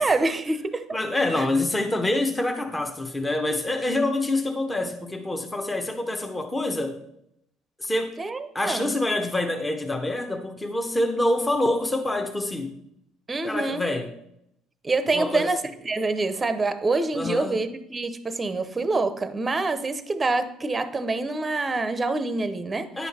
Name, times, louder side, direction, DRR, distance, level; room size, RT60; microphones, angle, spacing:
voice 1, 0.0-1.0 1.4-1.5 8.2-8.9 13.3-13.8 14.8-22.9, right 3 dB, 20° right, 0.7 m, -26 dB
voice 2, 0.9-7.0 7.8-8.2 8.5-12.7 13.4-14.1 15.1-15.5 17.1-17.7 23.0-23.1, left 2 dB, 15° left, 0.9 m, -26 dB
9.8 x 5.6 x 4.2 m
cardioid pair, 120°, 0 cm